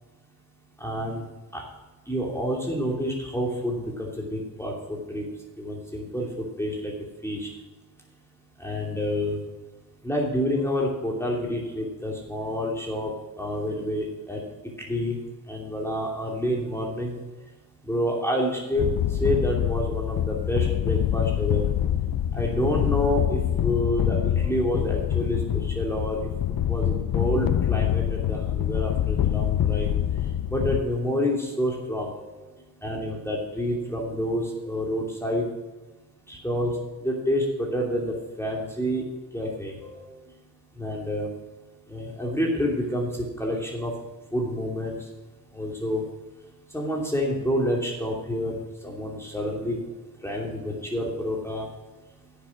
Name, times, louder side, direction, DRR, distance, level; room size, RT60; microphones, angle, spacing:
voice 1, 0.8-1.2 1.5-1.6 2.1-5.2 5.6-6.9 7.2-7.5 8.6-9.4 10.0-14.4 14.8-15.2 15.5-17.2 17.8-18.8 19.1-21.6 22.3-26.3 26.7-29.9 30.5-32.5 32.8-35.4 36.3-39.0 39.3-40.2 40.8-41.3 41.9-43.1 43.4-43.9 44.3-45.1 45.5-46.1 46.7-48.6 48.8-49.8 50.2-51.7, equal, 5° left, -2 dB, 2.9 m, -28 dB
sound 1, 18.8-30.8, left 10 dB, 55° left, 0.6 m, -25 dB
9.9 x 6.8 x 7.9 m, 1.2 s
cardioid pair, 55°, 42 cm